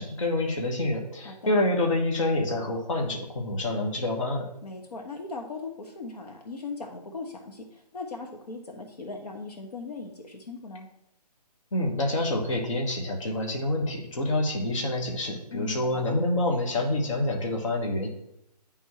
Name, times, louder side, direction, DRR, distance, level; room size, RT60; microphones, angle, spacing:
voice 1, 0.0-4.5 11.7-18.1, left 1 dB, 50° left, 1 dB, 1.4 m, -27 dB
voice 2, 4.6-10.9 15.5-16.0, left 3 dB, 70° left, 2 dB, 1.3 m, -39 dB
9.8 x 3.6 x 4.7 m, 0.80 s
hypercardioid pair, 160°, 21 cm